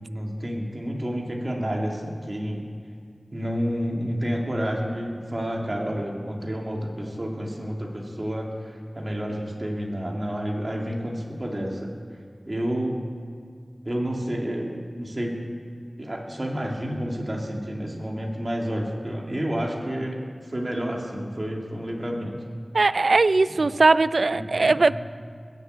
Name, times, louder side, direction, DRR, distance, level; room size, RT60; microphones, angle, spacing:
voice 1, 0.0-2.7 3.3-11.9 12.5-13.0 13.8-15.4 16.0-20.2 20.5-22.4 23.6-23.7 24.3-24.4 24.7-24.9, equal, 35° right, -1 dB, 2.8 m, -30 dB
voice 2, 22.7-24.9, right 3 dB, 75° right, 15 dB, 0.4 m, -19 dB
20.5 x 8.1 x 8.4 m, 2.2 s
wide cardioid pair, 60°, 0 cm